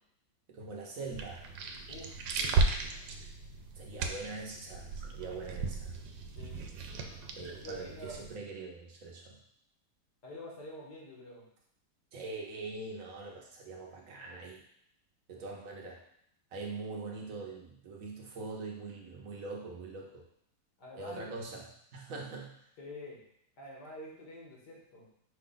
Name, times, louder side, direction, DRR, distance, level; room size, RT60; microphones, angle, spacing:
voice 1, 0.5-1.5 3.7-6.0 7.3-9.4 12.1-14.6 15.3-16.0 16.5-20.2 21.0-21.6 21.9-22.5, right 3 dB, 55° right, -2 dB, 1.1 m, -43 dB
sound 1, 1.0-8.4, right 3 dB, 85° right, 1.3 m, -35 dB
voice 2, 1.9-2.6 3.9-4.0 6.4-6.6 6.9-8.2 10.2-11.5 15.3-15.5 20.8-21.3 22.1-22.2 22.8-23.2 23.6-25.1, equal, 70° left, -3 dB, 1.8 m, -47 dB
5.6 x 2.4 x 3.9 m, 0.71 s
omnidirectional pair, 1.9 m